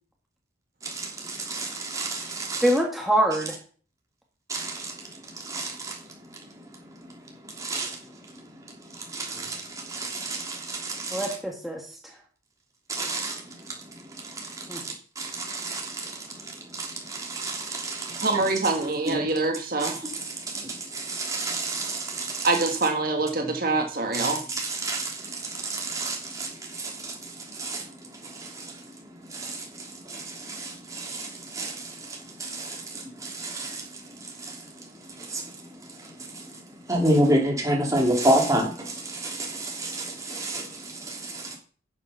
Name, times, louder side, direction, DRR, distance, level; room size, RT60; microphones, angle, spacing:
voice 1, 0.8-2.6 4.5-6.0 6.3-6.4 7.1-7.2 7.5-11.3 12.9-13.8 14.1-18.3 19.0-19.3 19.8-22.5 24.1-28.8 29.3-34.7 35.0-36.6 36.9-41.6, right 1 dB, 15° right, 3.0 m, -31 dB
voice 2, 2.6-3.6 11.1-12.2 14.7-14.8, right 1 dB, ahead, 1.6 m, -25 dB
voice 3, 18.2-20.1 22.4-24.4, right 3 dB, 50° right, 1.6 m, -25 dB
11.5 x 7.0 x 5.7 m
head